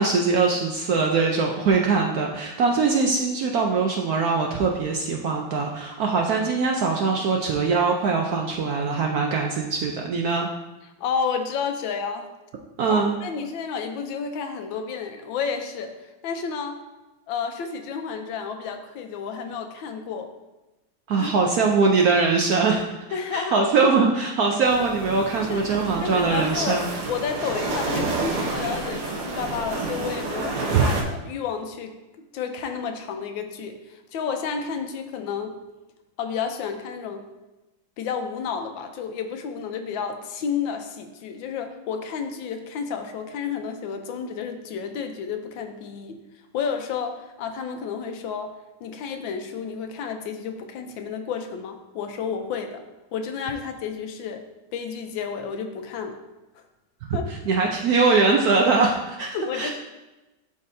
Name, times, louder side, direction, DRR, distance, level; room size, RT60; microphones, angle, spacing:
voice 1, 0.0-10.5 12.8-13.1 21.1-22.9 23.3-26.9 30.7-30.8 57.5-59.7, right 4 dB, 70° right, 1 dB, 0.9 m, -22 dB
voice 2, 11.0-12.3 12.9-15.9 16.2-16.8 17.3-20.3 21.2-21.4 23.1-23.6 25.5-25.6 26.0-31.9 32.3-35.6 36.2-37.2 38.0-46.2 46.5-48.5 48.8-52.8 53.1-54.4 54.7-56.2 57.1-57.3 59.3-59.7, left 6 dB, 80° left, 6 dB, 1.4 m, -31 dB
sound 1, 24.6-31.0, right 3 dB, 55° right, 1.2 m, -29 dB
11.5 x 3.9 x 2.7 m, 1.0 s
omnidirectional pair, 2.1 m